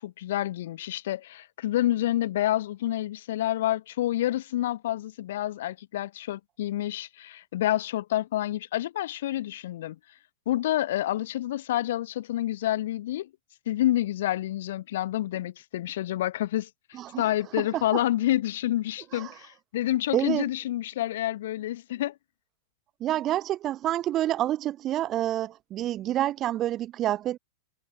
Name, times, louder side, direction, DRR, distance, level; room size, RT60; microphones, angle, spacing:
voice 1, 0.0-10.0 10.5-13.3 13.7-16.7 17.2-22.1, left 13 dB, 70° left, 0.9 m, -28 dB
voice 2, 16.9-17.3 17.6-18.0 19.1-19.3 20.1-20.5 23.0-27.4, right 13 dB, 30° right, 0.3 m, -28 dB
supercardioid pair, 145°, 0 cm